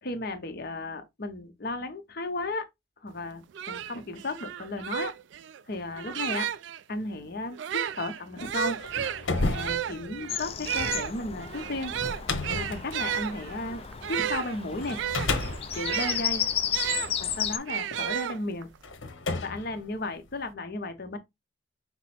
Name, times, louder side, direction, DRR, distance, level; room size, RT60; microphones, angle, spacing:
voice 1, 0.0-2.7 3.0-5.1 5.7-6.5 6.9-8.8 9.4-11.9 12.5-15.0 15.7-16.4 17.2-18.7 19.4-21.2, left 2 dB, 50° left, 0.8 m, -34 dB
sound 1, 3.2-3.3 3.5-6.8 7.5-17.1 17.7-18.8, right 10 dB, 65° right, 0.3 m, -33 dB
sound 2, 8.6-14.2 14.8-17.3 18.1-18.2 18.8-20.5, left 3 dB, 80° left, 1.0 m, -33 dB
Bird vocalization bird call bird song, 10.3-17.6, left 8 dB, 30° left, 0.4 m, -33 dB
5.9 x 2.0 x 4.2 m
head